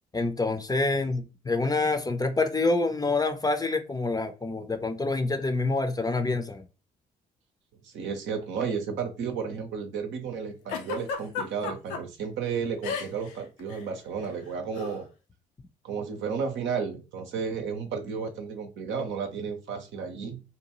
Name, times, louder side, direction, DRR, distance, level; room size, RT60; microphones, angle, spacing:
voice 1, 0.1-6.6, left 3 dB, 20° left, 0.5 m, -27 dB
voice 2, 7.8-15.1 15.8-20.4, right 6 dB, 65° right, 0.7 m, -33 dB
Giggle, 10.7-12.0 12.8-13.3 13.6-13.8 14.8-15.0, left 6 dB, 75° left, 0.6 m, -32 dB
2.7 x 2.2 x 2.9 m
hypercardioid pair, 50°, 21 cm